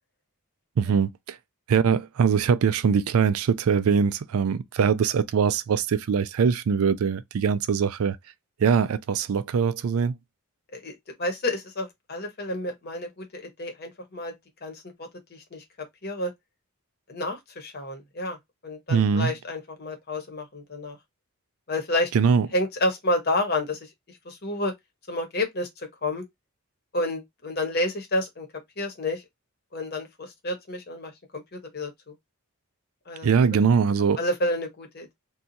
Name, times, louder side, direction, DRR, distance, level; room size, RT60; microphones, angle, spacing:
voice 1, 0.8-1.4 1.7-8.2 8.6-10.2 18.9-19.3 22.1-22.5 33.2-34.2, right 6 dB, 70° right, 0.4 m, -22 dB
voice 2, 10.7-14.3 14.6-14.8 15.3-15.6 16.0-16.3 17.1-18.4 18.6-21.0 21.7-22.1 22.5-23.8 24.2-24.7 25.1-25.7 26.0-26.2 26.9-28.5 28.8-29.2 29.7-32.1 33.1-33.3 34.2-35.1, left 1 dB, 45° left, 1.0 m, -29 dB
2.7 x 2.3 x 3.9 m
head